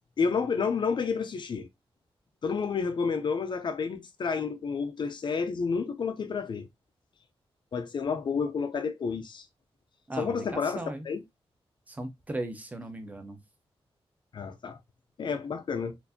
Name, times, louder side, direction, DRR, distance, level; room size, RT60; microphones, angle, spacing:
voice 1, 0.2-1.7 2.4-6.7 7.7-9.4 10.2-11.2 14.3-14.8 15.2-16.0, left 5 dB, 50° left, 0.5 m, -30 dB
voice 2, 10.1-11.1 11.9-13.4, right 1 dB, 15° right, 0.6 m, -37 dB
4.4 x 2.6 x 2.6 m
wide cardioid pair, 170°, 10 cm